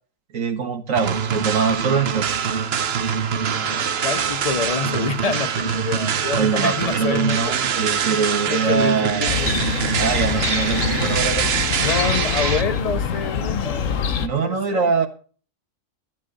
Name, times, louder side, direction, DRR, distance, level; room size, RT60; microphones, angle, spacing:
voice 1, 0.3-2.3 6.3-9.4 10.0-11.5 14.2-15.1, right 5 dB, 75° right, 1.8 m, -23 dB
sound 1, 0.9-12.6, right 7 dB, 55° right, 1.0 m, -24 dB
voice 2, 3.4-7.6 8.1-9.5 11.8-13.9 14.4-14.9, left 5 dB, 40° left, 0.5 m, -27 dB
Chirp tweet, 9.3-14.3, left 7 dB, 70° left, 1.3 m, -25 dB
14.0 x 10.5 x 3.9 m
omnidirectional pair, 1.4 m